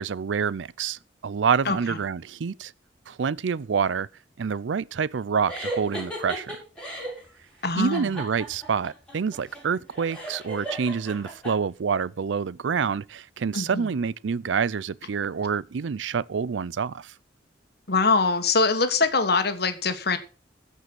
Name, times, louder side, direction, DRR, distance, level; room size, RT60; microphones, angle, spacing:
voice 1, 0.0-2.7 3.1-4.1 4.4-6.6 7.7-17.1, right 6 dB, 85° right, 0.5 m, -27 dB
sound 1, 5.5-7.2 7.9-11.5, right 1 dB, 5° left, 4.8 m, -35 dB
voice 2, 7.6-8.1 13.5-13.9 17.9-20.2, left 4 dB, 60° left, 1.6 m, -23 dB
15.0 x 5.5 x 6.0 m
head